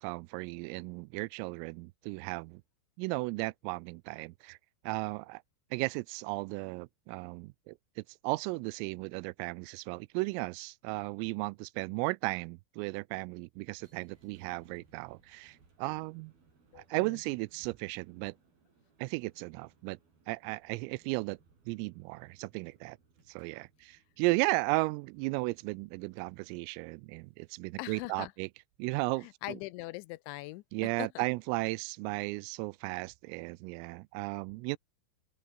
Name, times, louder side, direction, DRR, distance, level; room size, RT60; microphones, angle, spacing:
voice 1, 0.0-2.6 3.0-4.6 4.8-5.4 5.7-16.3 16.8-18.4 19.0-20.0 20.3-21.4 21.7-23.0 23.3-28.5 28.8-29.6 30.7-34.8, right 25 dB, 90° right, 3.3 m, -35 dB
sound 1, 13.6-28.0, right 4 dB, 45° right, 8.7 m, -68 dB
voice 2, 16.7-17.2 27.8-28.3 29.2-31.2, left 20 dB, 80° left, 2.8 m, -42 dB
open air
omnidirectional pair, 5.8 m